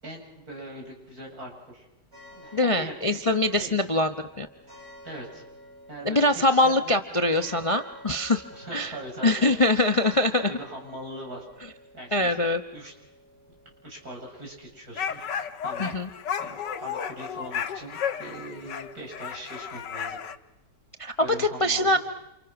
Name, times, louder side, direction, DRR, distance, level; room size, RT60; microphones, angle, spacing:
voice 1, 0.0-1.9 2.3-3.0 3.2-3.7 5.0-5.4 5.9-6.8 7.1-7.2 8.5-11.5 11.9-12.4 12.7-12.9 13.8-20.2 21.2-22.0, right 1 dB, 60° right, -1 dB, 8.4 m, -41 dB
sound 1, 2.1-21.4, equal, 35° right, 8.3 m, -52 dB
voice 2, 2.5-4.5 6.0-8.4 8.7-9.0 9.2-10.5 12.1-12.6 15.8-16.1 21.0-22.0, left 2 dB, 25° left, 8 dB, 0.8 m, -23 dB
sound 2, 15.0-20.4, left 7 dB, 90° left, 1.8 m, -33 dB
29.0 x 28.5 x 6.0 m, 0.91 s
omnidirectional pair, 1.8 m